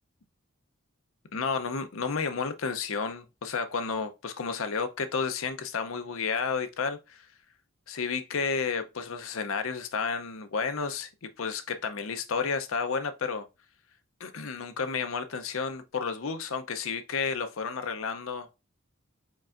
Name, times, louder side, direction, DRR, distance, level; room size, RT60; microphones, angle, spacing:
voice 1, 1.3-7.2 7.9-13.5 14.2-18.6, left 5 dB, 75° left, 0.6 m, -31 dB
4.9 x 4.4 x 2.5 m
head